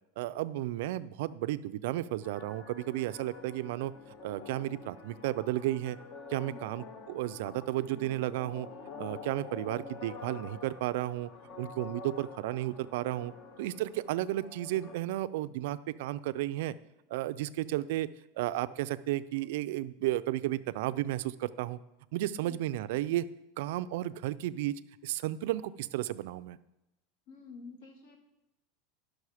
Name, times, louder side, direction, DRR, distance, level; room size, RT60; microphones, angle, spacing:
voice 1, 0.2-3.9 4.2-6.0 6.3-8.7 9.0-11.3 11.6-13.3 13.6-16.7 17.1-18.1 18.4-21.8 22.1-23.3 23.6-26.6, right 15 dB, 65° right, 13 dB, 0.4 m, -33 dB
sound 1, 2.2-15.0, left 5 dB, 35° left, 0.8 m, -47 dB
voice 2, 27.3-28.2, left 5 dB, 65° left, 4 dB, 1.8 m, -49 dB
10.5 x 6.4 x 4.8 m, 0.91 s
supercardioid pair, 160°, 0 cm